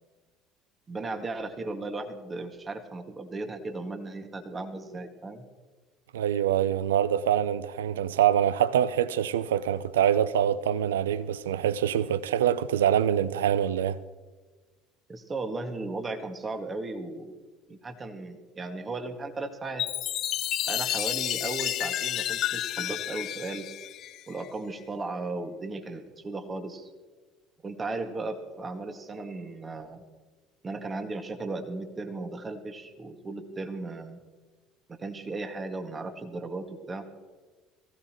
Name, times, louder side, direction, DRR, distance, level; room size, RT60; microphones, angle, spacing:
voice 1, 0.9-5.4 15.1-17.3 17.7-19.9 20.7-23.7 24.3-26.9 27.6-30.0 30.6-34.2 34.9-37.0, right 3 dB, 30° right, 1.9 m, -36 dB
voice 2, 6.1-14.0, right 10 dB, 85° right, 0.4 m, -25 dB
Chime, 19.8-24.5, left 12 dB, 55° left, 0.4 m, -31 dB
23.0 x 16.0 x 3.0 m
hypercardioid pair, 65°, 0 cm